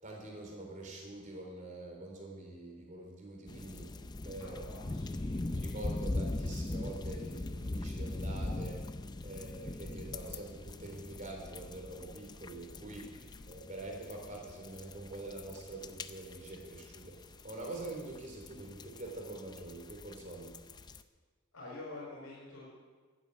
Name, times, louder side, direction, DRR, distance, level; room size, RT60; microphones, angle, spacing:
voice 1, 0.0-4.0 4.2-4.8 5.5-8.9 9.2-20.5, right 2 dB, 35° right, 0 dB, 3.6 m, -45 dB
sound 1, 3.5-21.0, left 2 dB, 20° left, 0.4 m, -41 dB
voice 2, 4.4-5.4 13.1-13.2 21.5-22.7, left 2 dB, 85° left, -4 dB, 4.8 m, -47 dB
12.5 x 10.5 x 8.5 m, 1.4 s
head